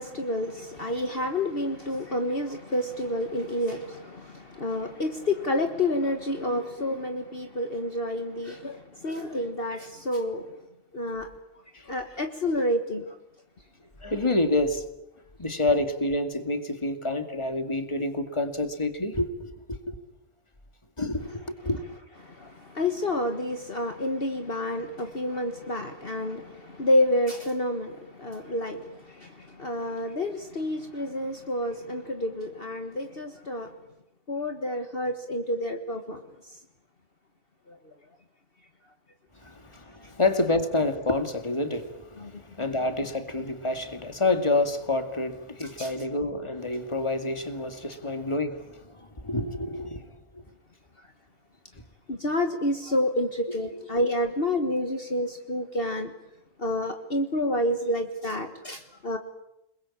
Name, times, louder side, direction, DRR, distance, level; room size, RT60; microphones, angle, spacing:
voice 1, 0.0-10.5 10.9-11.3 11.9-13.2 22.2-33.7 34.3-36.6 37.7-37.9 39.4-39.5 40.0-40.1 42.2-42.4 45.6-45.9 51.0-51.1 52.1-56.1 56.6-59.2, left 1 dB, 45° left, 1.8 m, -29 dB
voice 2, 14.0-14.8 15.4-20.0 21.0-21.8 39.4-50.1, left 2 dB, 20° left, 2.4 m, -28 dB
29.5 x 21.5 x 8.7 m
omnidirectional pair, 1.3 m